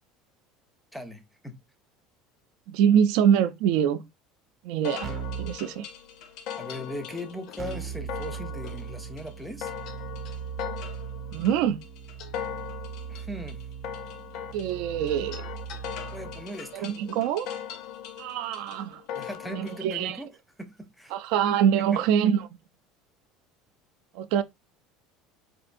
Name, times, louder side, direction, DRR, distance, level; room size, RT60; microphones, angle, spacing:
voice 1, 0.9-1.6 6.6-9.7 13.1-13.6 16.1-16.9 19.1-20.3 20.6-21.1 21.9-22.0, equal, ahead, 0.5 m, -38 dB
voice 2, 2.7-4.0 4.6-5.1 5.4-5.9 11.3-11.8 14.5-15.4 16.7-17.5 18.2-19.0 19.5-20.2 21.1-22.5 24.1-24.4, right 9 dB, 65° right, 0.3 m, -24 dB
sound 1, 4.8-19.8, left 9 dB, 55° left, 0.5 m, -40 dB
Keyboard (musical), 5.0-5.6 7.6-16.5, right 8 dB, 35° right, 0.8 m, -39 dB
4.3 x 2.5 x 2.5 m
cardioid pair, 165°, 0 cm